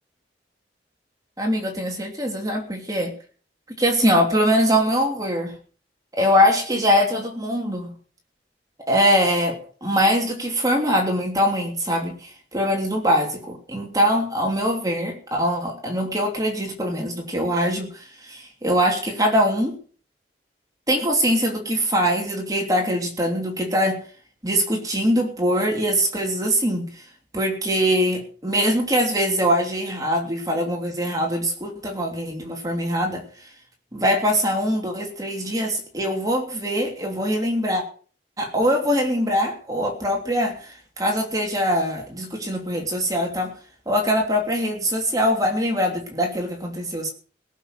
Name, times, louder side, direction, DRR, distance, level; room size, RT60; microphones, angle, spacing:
voice 1, 1.4-3.1 3.8-5.5 6.1-7.9 8.9-19.7 20.9-24.0 24.4-26.9 27.3-33.2 33.9-37.8 38.4-43.5 43.9-47.1, equal, 20° right, 2 dB, 2.9 m, -22 dB
18.0 x 7.4 x 7.6 m, 0.42 s
head